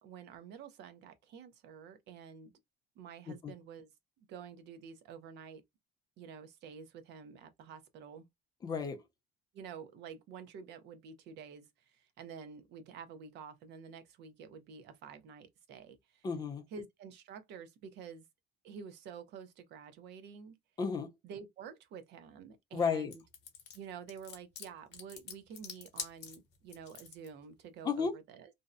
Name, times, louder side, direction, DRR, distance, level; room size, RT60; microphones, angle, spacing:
voice 1, 0.0-2.5 3.0-3.9 4.2-5.6 6.2-8.3 9.5-16.3 16.7-18.3 18.6-20.6 21.2-23.2 23.7-28.5, right 6 dB, 55° right, 0.5 m, -49 dB
voice 2, 8.6-9.0 16.2-16.6 20.8-21.1 22.7-23.1 27.8-28.2, left 6 dB, 20° left, 0.4 m, -33 dB
sound 1, 23.1-27.3, left 8 dB, 55° left, 0.8 m, -45 dB
2.6 x 2.0 x 2.4 m
cardioid pair, 175°, 21 cm